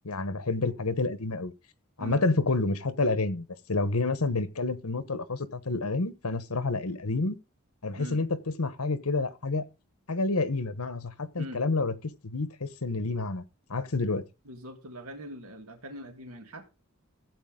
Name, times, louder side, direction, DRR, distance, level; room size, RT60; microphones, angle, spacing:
voice 1, 0.0-1.5 2.0-7.4 7.8-9.7 10.1-11.9 12.2-13.4 13.7-14.2, left 3 dB, 85° left, 1.1 m, -29 dB
voice 2, 14.4-16.7, equal, 80° right, 1.9 m, -42 dB
15.0 x 8.2 x 3.8 m
head